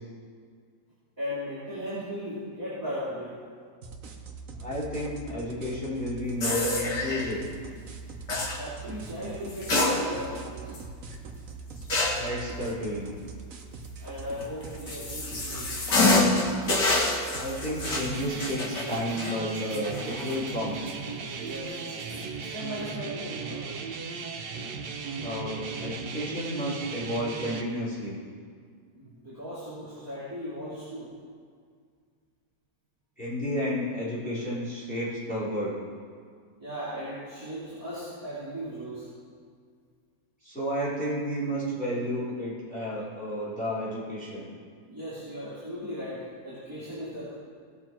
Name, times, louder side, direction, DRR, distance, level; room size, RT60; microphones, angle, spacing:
voice 1, 1.2-3.4 8.3-10.8 14.0-15.7 21.3-21.8 22.4-23.7 28.9-31.1 36.6-39.1 44.9-47.3, equal, 10° right, -13 dB, 3.2 m, -37 dB
sound 1, 3.8-18.2, right 3 dB, 55° right, 1.3 m, -42 dB
voice 2, 4.6-7.4 12.2-13.1 17.3-20.8 25.2-28.2 33.2-35.8 40.4-44.5, equal, 5° left, -10 dB, 3.5 m, -32 dB
sound 2, 6.4-7.3 8.3-8.6 9.5-10.4 10.7-10.8 11.9-12.3 14.4-20.5 20.9-21.0 21.9-22.2, left 2 dB, 90° left, 2.5 m, -27 dB
sound 3, 17.8-27.6, right 4 dB, 75° right, 1.5 m, -36 dB
18.5 x 6.8 x 4.5 m, 2.1 s
omnidirectional pair, 1.8 m